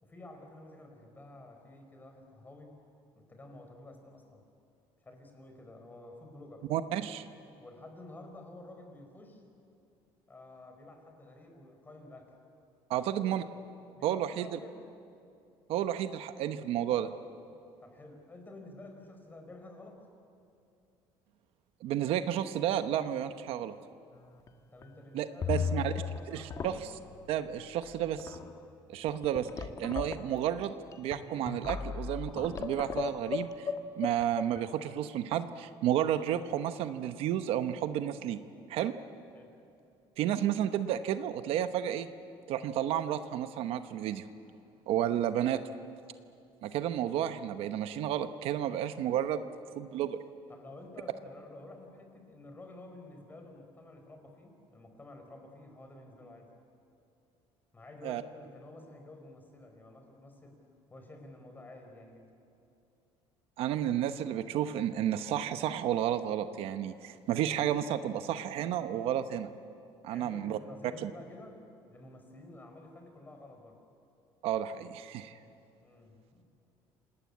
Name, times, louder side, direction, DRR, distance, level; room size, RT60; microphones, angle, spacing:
voice 1, 0.0-2.7 3.1-4.4 5.0-7.1 7.6-9.4 10.3-12.3 12.9-13.3 13.9-14.8 17.8-20.0 24.7-26.8 39.3-39.5 50.5-56.5 57.7-60.6 60.9-62.3 70.1-71.6 71.9-73.8 75.8-76.5, left 2 dB, 20° left, 4 dB, 4.7 m, -51 dB
voice 2, 6.7-7.2 12.9-13.4 14.0-14.6 15.7-17.1 21.8-23.7 25.1-25.9 26.3-26.8 27.3-28.4 28.9-33.7 34.0-38.4 38.7-38.9 40.2-42.1 42.5-44.2 44.9-45.6 46.6-49.4 49.7-50.2 58.0-58.2 63.6-69.5 70.0-70.6 71.0-71.1 74.4-75.3, right 11 dB, 70° right, 10 dB, 1.0 m, -31 dB
sound 1, 24.1-24.5 24.8-24.9 25.4-26.2 26.5-27.1 27.8-27.9 28.2-28.5 29.1-34.6, left 6 dB, 35° left, 1.5 m, -36 dB
28.0 x 19.0 x 8.6 m, 2.6 s
cardioid pair, 130°, 10 cm